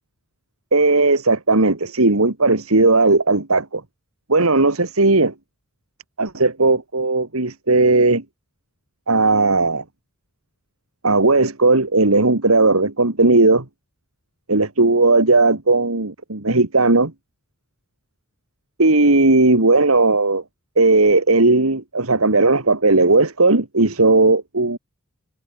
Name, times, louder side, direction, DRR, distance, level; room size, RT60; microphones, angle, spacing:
voice 1, 0.7-3.8 4.3-5.3 6.2-8.2 9.1-9.8 11.0-13.6 14.5-17.1 18.8-20.4 20.8-24.8, right 3 dB, 80° right, 2.3 m, -16 dB
head